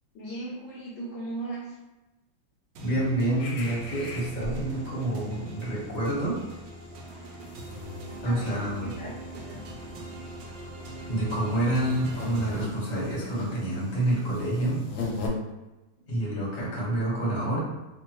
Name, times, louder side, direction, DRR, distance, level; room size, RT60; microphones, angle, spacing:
voice 1, 0.1-1.8 8.2-9.8, right 2 dB, 70° left, -6 dB, 1.1 m, -38 dB
voice 2, 2.8-6.4 8.2-8.9 11.1-14.8 16.1-17.6, right 1 dB, 35° left, -6 dB, 0.8 m, -28 dB
sound 1, 2.8-13.4, right 1 dB, 80° right, 1.4 m, -42 dB
sound 2, 3.4-5.0 5.3-5.5 5.8-15.3, left 3 dB, 90° left, 1.4 m, -40 dB
3.5 x 2.2 x 2.9 m, 1.0 s
omnidirectional pair, 2.2 m